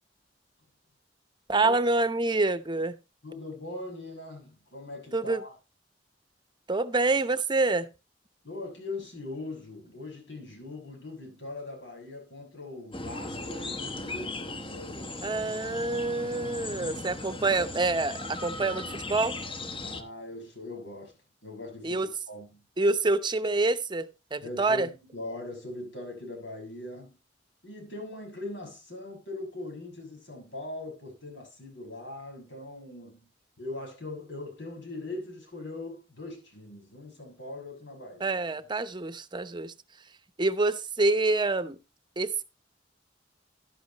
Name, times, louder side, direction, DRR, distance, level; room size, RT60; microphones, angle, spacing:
voice 1, 1.5-3.0 5.1-5.4 6.7-7.9 15.2-19.4 21.8-22.1 22.8-24.9 38.2-39.7 40.4-41.8 42.2-42.4, right 3 dB, 25° right, 0.8 m, -27 dB
voice 2, 3.2-5.5 8.4-15.1 19.8-22.6 24.4-27.1 27.6-33.2 33.6-38.4, left 2 dB, 80° left, 6.4 m, -41 dB
sound 1, 12.9-20.0, left 2 dB, 30° left, 1.1 m, -37 dB
11.5 x 11.0 x 3.0 m
head